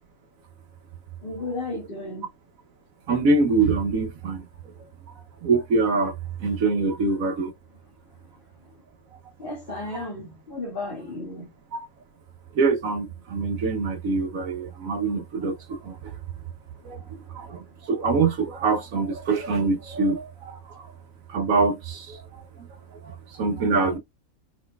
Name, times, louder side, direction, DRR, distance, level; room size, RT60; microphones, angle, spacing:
voice 1, 1.2-2.3 9.4-11.5, left 2 dB, 35° left, 2.1 m, -34 dB
voice 2, 3.1-4.5 5.4-6.1 6.4-7.5 9.7-10.1 11.7-11.8 12.6-16.0 16.8-17.0 17.3-20.9 21.3-22.2 23.0-24.0, right 3 dB, 70° right, 1.2 m, -24 dB
4.6 x 4.3 x 2.3 m
omnidirectional pair, 1.5 m